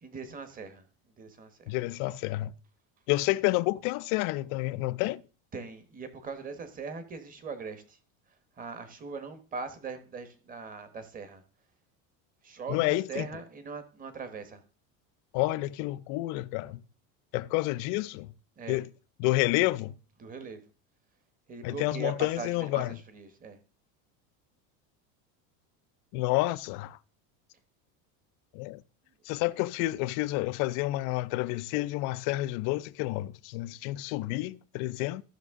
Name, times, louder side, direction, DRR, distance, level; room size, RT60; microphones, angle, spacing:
voice 1, 0.0-0.8 1.2-1.8 5.5-8.0 8.6-11.4 12.4-14.6 18.6-18.8 20.2-20.6 21.5-23.6, right 4 dB, 20° right, 1.2 m, -40 dB
voice 2, 1.7-2.5 3.1-5.2 12.7-13.3 15.3-16.8 17.3-18.3 18.7-18.9 19.2-19.9 21.6-23.0 26.1-27.0 28.5-28.8 29.3-35.2, left 18 dB, 55° left, 0.5 m, -29 dB
14.5 x 6.1 x 3.6 m
cardioid pair, 155°, 41 cm